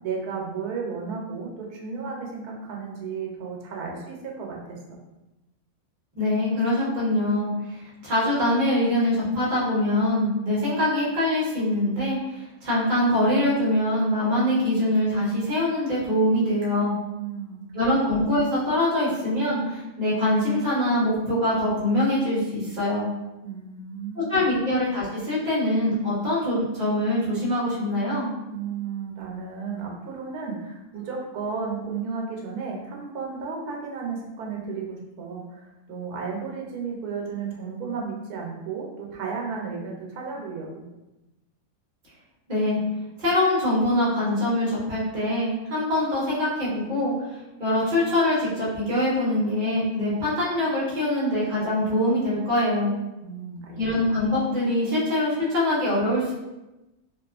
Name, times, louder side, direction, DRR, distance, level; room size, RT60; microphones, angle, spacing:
voice 1, 0.0-4.6 17.1-17.9 23.4-24.5 28.5-40.8 53.2-53.8, right 5 dB, 80° right, -1 dB, 1.2 m, -33 dB
voice 2, 6.1-16.9 17.7-23.1 24.3-28.3 42.5-42.8 43.2-52.9 53.8-56.3, left 1 dB, 35° right, -7 dB, 1.0 m, -24 dB
2.8 x 2.3 x 2.4 m, 1.0 s
omnidirectional pair, 1.6 m